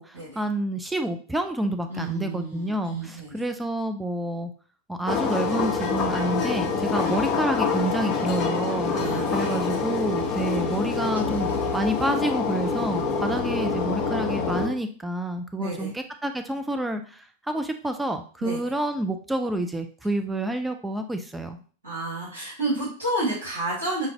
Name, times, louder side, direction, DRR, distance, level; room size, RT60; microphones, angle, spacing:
voice 1, 0.0-4.5 4.9-8.9 9.3-21.6, right 1 dB, 5° right, 6 dB, 0.4 m, -29 dB
voice 2, 1.9-3.5 6.9-7.0 8.9-9.7 13.2-13.4 15.6-15.9 18.4-18.7 21.8-24.1, right 2 dB, 70° right, -8 dB, 2.1 m, -31 dB
sound 1, 5.1-14.7, left 5 dB, 30° left, 0.8 m, -26 dB
sound 2, 11.1-13.0, left 4 dB, 85° right, 0.5 m, -40 dB
5.6 x 2.5 x 3.0 m, 0.42 s
figure-of-eight pair, 90°, 0 cm